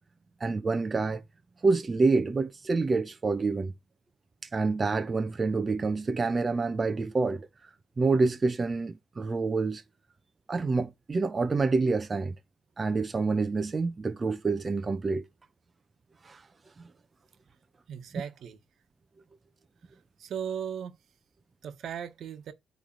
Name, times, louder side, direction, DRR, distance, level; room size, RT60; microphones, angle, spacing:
voice 1, 0.4-1.2 1.6-3.7 4.5-7.5 8.0-9.8 10.5-12.3 12.8-15.2 16.2-16.4 16.8-16.9, right 3 dB, 30° right, 0.8 m, -27 dB
voice 2, 17.9-18.6 20.2-21.0 21.6-22.5, right 8 dB, 70° right, 1.3 m, -37 dB
8.8 x 3.3 x 4.4 m
cardioid pair, 90°, 0 cm